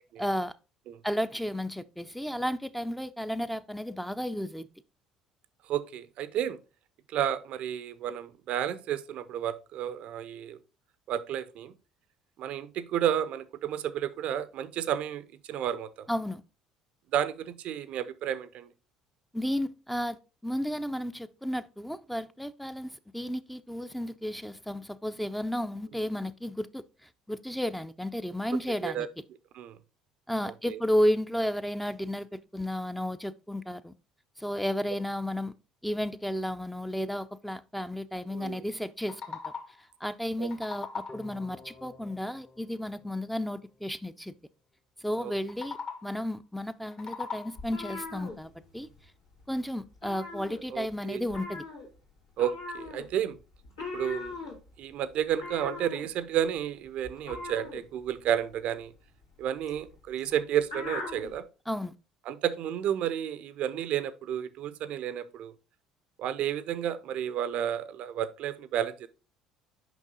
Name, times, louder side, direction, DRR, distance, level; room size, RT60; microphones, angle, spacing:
voice 1, 0.2-0.5 1.0-4.7 16.1-16.4 19.3-26.8 27.3-29.1 30.3-33.9 34.4-35.5 35.8-39.5 40.0-44.3 45.0-48.9 49.5-51.6 61.7-61.9, equal, 5° left, 0.5 m, -33 dB
voice 2, 5.7-6.6 7.1-10.6 11.1-11.7 12.4-16.1 17.1-18.7 28.8-29.1 29.5-29.8 30.7-30.8 38.3-38.6 40.4-40.5 45.2-45.3 50.7-51.2 52.4-53.4 53.9-54.4 54.8-58.9 59.4-61.4 62.3-65.5 66.2-69.1, right 10 dB, 55° right, 0.5 m, -31 dB
sound 1, 38.8-39.9 40.2-41.4 45.4-46.3 46.7-47.8, left 5 dB, 50° left, 1.7 m, -40 dB
sound 2, 41.1-44.1, left 2 dB, 25° left, 0.9 m, -52 dB
sound 3, 47.6-49.1 49.3-49.6 49.9-51.0 51.3-61.4, left 3 dB, 85° left, 2.5 m, -41 dB
6.2 x 5.3 x 3.8 m
hypercardioid pair, 60°, 2 cm